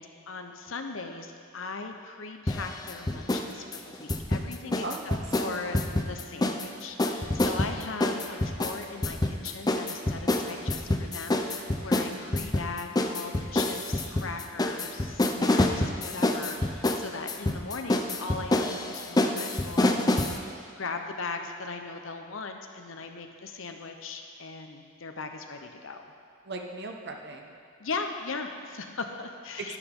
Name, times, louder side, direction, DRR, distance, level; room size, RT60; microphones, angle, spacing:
voice 1, 0.0-4.8 5.4-20.2 20.8-26.1 27.8-29.8, left 4 dB, 75° left, 5 dB, 0.9 m, -39 dB
sound 1, 2.5-3.5 3.7-6.7 7.0-20.4, left 1 dB, 20° left, 0.5 m, -27 dB
voice 2, 4.8-5.2 5.4-5.8 26.4-27.6 29.6-29.8, right 3 dB, 55° right, 3 dB, 1.0 m, -38 dB
12.0 x 11.0 x 3.8 m, 2.2 s
head